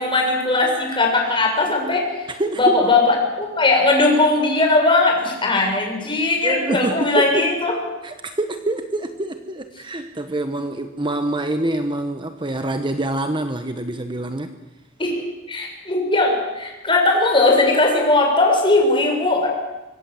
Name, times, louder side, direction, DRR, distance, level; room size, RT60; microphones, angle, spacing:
voice 1, 0.0-2.3 2.6-7.7 15.0-15.2 15.5-19.5, left 2 dB, 25° left, 1 dB, 6.8 m, -18 dB
voice 2, 2.3-2.8 6.4-7.4 8.0-14.5, right 1 dB, 25° right, 7 dB, 1.2 m, -25 dB
25.5 x 24.5 x 7.9 m, 1.1 s
head